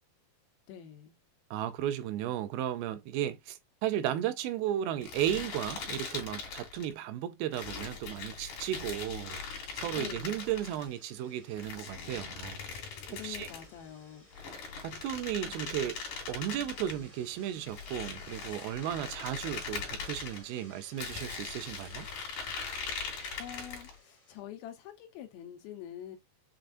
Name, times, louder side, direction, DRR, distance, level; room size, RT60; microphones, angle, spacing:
voice 1, 0.7-1.1 9.9-10.4 13.1-14.3 22.9-26.2, left 10 dB, 80° left, 2.6 m, -46 dB
voice 2, 1.5-9.4 9.7-12.6 13.2-13.5 14.8-16.0 16.3-22.1, right 11 dB, 85° right, 2.4 m, -34 dB
sound 1, 5.0-6.9 7.5-10.8 11.6-13.7 14.3-17.0 17.7-20.4 21.0-24.0, left 5 dB, 65° left, 3.0 m, -40 dB
sound 2, 7.9-24.4, left 1 dB, 25° left, 1.0 m, -58 dB
6.6 x 2.4 x 2.5 m
omnidirectional pair, 4.3 m